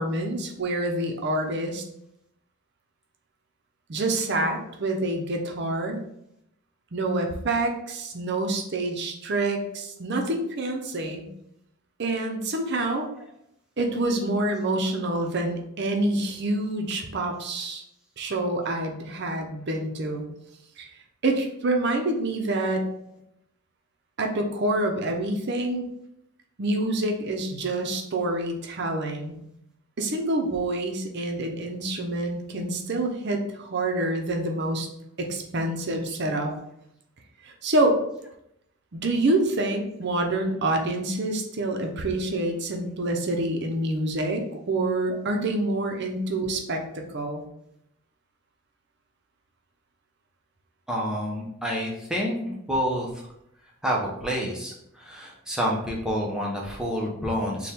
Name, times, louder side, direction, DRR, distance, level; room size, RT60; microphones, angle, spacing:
voice 1, 0.0-1.8 3.9-6.0 6.9-11.3 12.0-13.1 13.8-17.8 18.2-20.2 20.8-20.9 21.2-22.8 24.2-25.8 26.6-29.4 30.0-34.9 35.2-36.5 37.4-38.0 38.9-46.8 47.1-47.4, right 2 dB, 50° right, 3 dB, 0.6 m, -27 dB
voice 2, 50.9-53.1 53.8-57.7, equal, 5° right, -3 dB, 0.6 m, -28 dB
4.2 x 2.2 x 3.4 m, 0.77 s
head